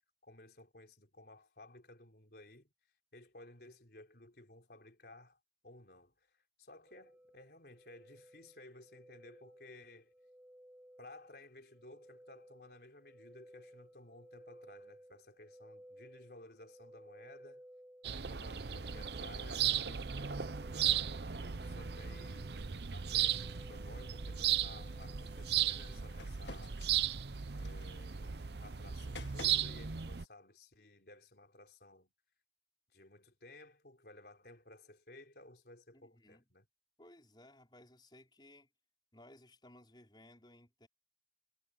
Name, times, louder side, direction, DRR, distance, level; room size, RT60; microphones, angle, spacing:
voice 1, 0.2-2.7 3.1-5.4 5.6-10.1 11.0-17.7 18.1-22.5 22.9-26.8 27.5-32.1 32.9-36.7, left 2 dB, 60° left, 4.0 m, -57 dB
sound 1, 6.9-26.3, equal, 10° right, 3.3 m, -59 dB
sound 2, 18.0-30.2, right 10 dB, 70° right, 0.7 m, -36 dB
sound 3, 24.8-29.8, left 4 dB, 85° left, 1.8 m, -55 dB
voice 2, 35.9-36.4 37.0-38.7 39.1-40.9, left 1 dB, 25° left, 5.1 m, -60 dB
head